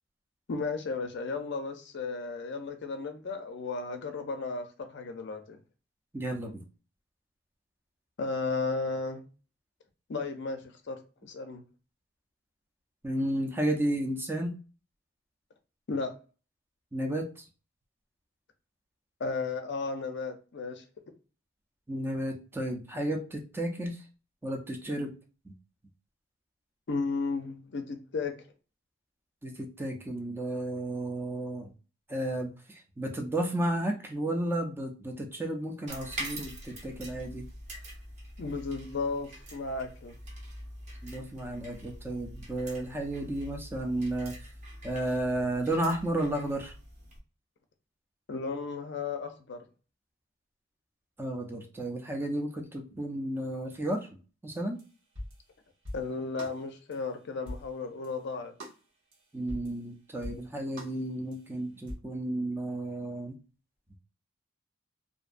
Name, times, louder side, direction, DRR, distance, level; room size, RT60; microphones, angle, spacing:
voice 1, 0.5-5.6 8.2-9.2 10.1-11.6 15.9-16.1 19.2-20.8 26.9-28.3 38.4-40.1 48.3-49.7 55.9-58.5, left 4 dB, 60° left, 0.5 m, -34 dB
voice 2, 6.1-6.6 13.0-14.6 16.9-17.3 21.9-24.0 24.4-25.1 25.5-25.6 29.4-31.7 32.1-37.5 41.0-44.3 44.8-46.7 51.2-54.0 54.4-54.8 59.3-63.3, right 1 dB, 10° right, 0.4 m, -32 dB
sound 1, 35.9-47.2, right 1 dB, 40° right, 0.8 m, -44 dB
sound 2, 54.8-54.9 55.2-55.4 55.8-56.1 56.4-56.6 56.9-57.0 57.5-57.7 58.0-58.1 58.6-58.8 59.1-59.2 59.5-59.8 60.2-60.4 60.8-61.0 61.3-61.4 61.9-62.0, equal, 70° right, 1.0 m, -41 dB
2.6 x 2.2 x 2.4 m
head